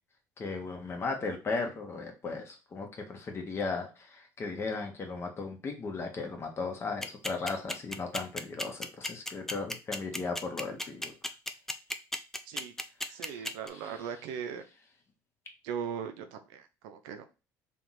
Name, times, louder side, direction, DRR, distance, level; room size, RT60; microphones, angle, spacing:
voice 1, 0.4-11.1 13.2-14.0, left 4 dB, 35° left, 3 dB, 1.3 m, -36 dB
sound 1, 7.0-13.7, left 1 dB, 5° left, 0.5 m, -34 dB
voice 2, 13.1-14.6 15.6-17.3, right 7 dB, 85° right, 7 dB, 0.7 m, -39 dB
3.4 x 2.9 x 4.0 m, 0.31 s
supercardioid pair, 90°, 7 cm